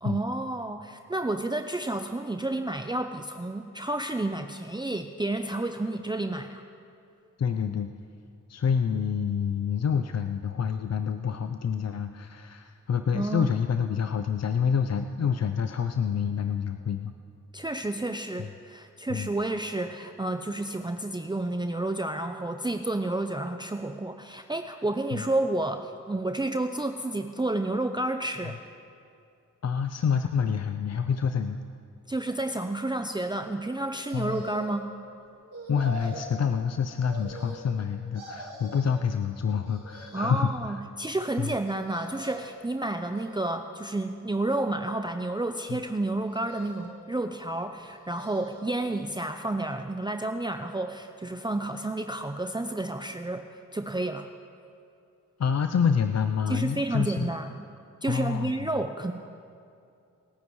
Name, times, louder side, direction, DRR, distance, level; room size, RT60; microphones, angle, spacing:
voice 1, 0.0-6.6 13.1-13.5 17.5-28.6 32.1-34.8 40.1-54.3 56.5-57.6 58.0-59.1, right 2 dB, 15° right, 6 dB, 0.6 m, -30 dB
voice 2, 7.4-7.9 8.5-17.1 18.4-18.5 19.1-19.3 25.1-25.2 29.6-31.6 34.1-34.4 35.7-40.8 41.4-41.5 45.7-45.8 55.4-57.3 58.1-58.7, left 6 dB, 50° left, 7 dB, 0.6 m, -27 dB
sound 1, 34.1-34.9 35.5-36.3 37.1-37.8 38.1-39.0 39.6-40.5 41.6-42.6 43.1-43.8 44.4-45.2 46.2-47.0 47.8-48.7 49.1-49.2, right 1 dB, 70° right, 4.0 m, -44 dB
28.0 x 9.4 x 3.2 m, 2.5 s
cardioid pair, 45°, 32 cm